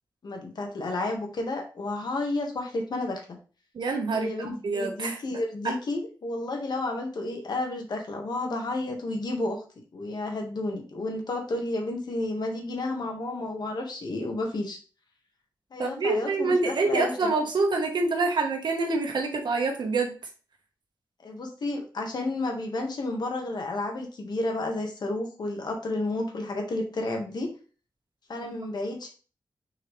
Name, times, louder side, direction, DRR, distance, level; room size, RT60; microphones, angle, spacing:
voice 1, 0.2-3.2 4.1-9.6 9.9-14.8 15.7-17.1 21.2-27.5 28.3-29.1, left 2 dB, 65° left, 2 dB, 1.7 m, -31 dB
voice 2, 3.7-5.2 5.6-5.7 15.8-20.1, right 3 dB, 75° right, 3 dB, 1.4 m, -26 dB
6.5 x 4.7 x 3.3 m, 0.37 s
wide cardioid pair, 155°, 8 cm